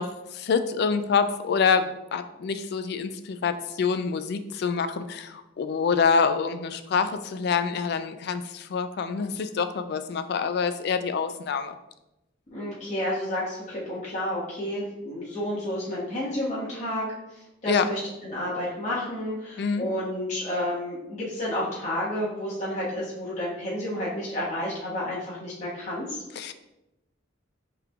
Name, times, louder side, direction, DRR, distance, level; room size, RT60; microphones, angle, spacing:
voice 1, 0.0-11.8 17.7-17.9 19.6-19.9 26.4-26.5, left 5 dB, 55° left, 10 dB, 0.3 m, -26 dB
voice 2, 12.5-17.1 17.3-26.2, left 1 dB, 40° left, -8 dB, 1.2 m, -31 dB
5.7 x 3.3 x 2.3 m, 0.93 s
head